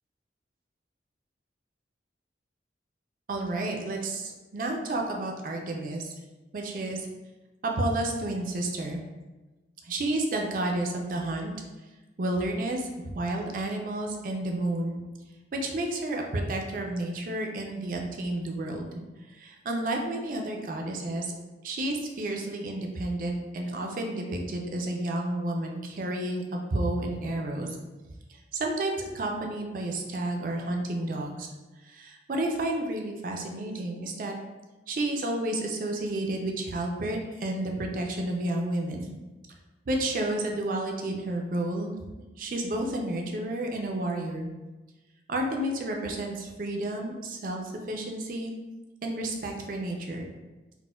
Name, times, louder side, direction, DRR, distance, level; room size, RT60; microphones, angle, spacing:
voice 1, 3.3-6.1 6.5-7.1 7.6-9.0 9.8-11.5 12.2-15.0 15.6-18.9 19.3-21.3 21.6-27.8 28.5-31.5 31.8-34.3 34.9-39.1 39.9-41.9 42.4-44.5 45.3-47.6 47.9-48.5 49.0-50.3, right 1 dB, 45° right, 1 dB, 0.4 m, -31 dB
4.1 x 2.1 x 2.2 m, 1.2 s
head